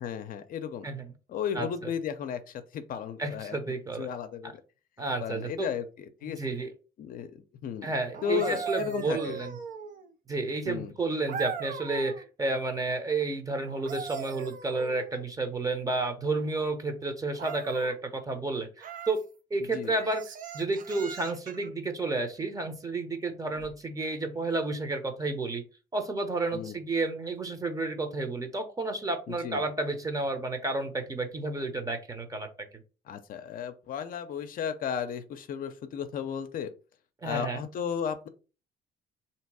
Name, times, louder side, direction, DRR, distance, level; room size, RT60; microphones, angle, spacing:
voice 1, 0.0-0.9 1.3-3.6 4.0-4.6 5.2-6.4 7.0-7.9 8.2-9.4 10.7-10.9 19.7-19.9 26.5-26.8 29.3-29.6 33.1-36.7 37.2-38.3, left 8 dB, 55° left, 9 dB, 0.6 m, -34 dB
voice 2, 1.5-1.9 3.2-4.1 4.4-4.5 5.0-5.7 6.2-6.7 7.8-9.6 10.3-19.2 19.5-20.2 20.5-25.6 25.9-32.5 37.2-37.7, right 3 dB, 20° right, 7 dB, 0.9 m, -31 dB
sound 1, 8.1-10.1 11.3-12.2 13.6-15.3 17.4-18.0 18.8-19.2 19.9-21.7 23.6-23.8, right 7 dB, 50° right, 0.6 m, -39 dB
3.3 x 2.9 x 4.7 m, 0.34 s
cardioid pair, 110°, 17 cm